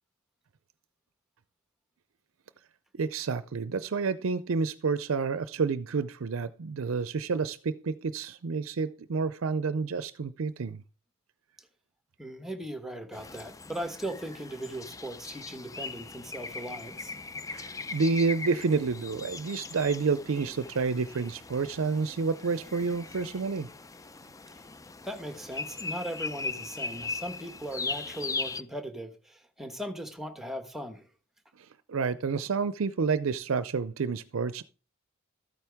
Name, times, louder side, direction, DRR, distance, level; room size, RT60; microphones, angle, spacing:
voice 1, 2.9-10.8 17.5-23.7 31.6-34.6, right 4 dB, 70° right, 0.5 m, -29 dB
voice 2, 12.2-17.2 25.0-31.1, right 1 dB, ahead, 1.2 m, -38 dB
sound 1, 13.1-28.6, left 3 dB, 15° left, 0.5 m, -39 dB
13.0 x 9.0 x 3.5 m
head